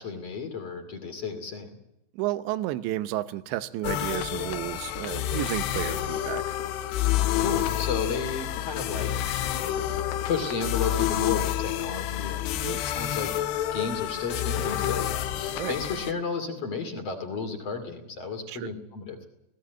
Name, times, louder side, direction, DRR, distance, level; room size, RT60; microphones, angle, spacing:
voice 1, 0.0-1.8 7.4-9.1 10.2-12.6 12.8-13.3 13.7-19.2, left 5 dB, 40° left, 5 dB, 3.1 m, -33 dB
voice 2, 2.1-6.6 12.6-12.8 15.5-15.7 18.5-18.7, right 15 dB, 80° right, 13 dB, 3.1 m, -32 dB
sound 1, 3.8-16.1, left 12 dB, 75° left, 2.9 m, -29 dB
18.5 x 17.0 x 9.2 m, 0.84 s
omnidirectional pair, 5.2 m